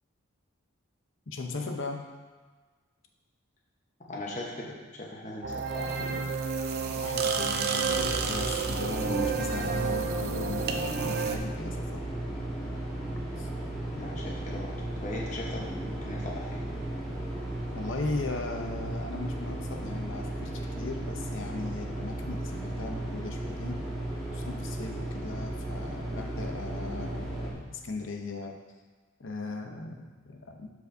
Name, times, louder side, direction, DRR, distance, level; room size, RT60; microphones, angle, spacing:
voice 1, 1.3-2.1 4.1-4.3 6.8-12.0 13.4-13.5 17.7-23.9 24.3-28.6 29.2-30.7, left 3 dB, 65° left, 3 dB, 0.8 m, -38 dB
voice 2, 4.1-6.3 14.0-16.7, left 1 dB, 35° left, -3 dB, 1.0 m, -39 dB
sound 1, 5.4-11.4, right 5 dB, 50° right, 0.5 m, -30 dB
sound 2, 7.9-27.5, right 1 dB, ahead, 1.8 m, -35 dB
13.0 x 4.6 x 2.7 m, 1.4 s
head